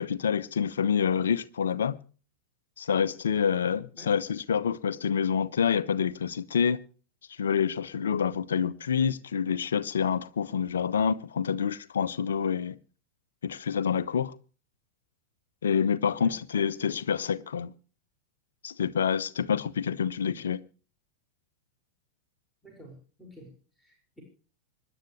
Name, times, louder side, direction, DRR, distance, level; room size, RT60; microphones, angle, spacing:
voice 1, 0.0-2.0 2.8-6.8 7.3-12.7 13.4-14.3 15.6-17.7 18.6-20.6, left 7 dB, 65° left, 0.8 m, -27 dB
voice 2, 22.6-24.2, equal, 5° left, 5.8 m, -50 dB
25.5 x 11.0 x 3.3 m
figure-of-eight pair, 90°, 0 cm